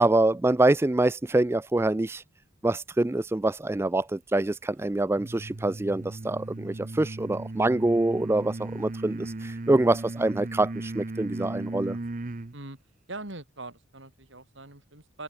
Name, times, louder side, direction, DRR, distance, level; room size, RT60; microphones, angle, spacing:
voice 1, 0.0-2.2 2.6-12.0, right 2 dB, 10° right, 0.3 m, -25 dB
sound 1, 5.2-12.6, right 2 dB, 40° right, 0.8 m, -36 dB
voice 2, 9.0-9.3 12.5-12.8 13.1-15.2, right 2 dB, 65° right, 4.3 m, -42 dB
head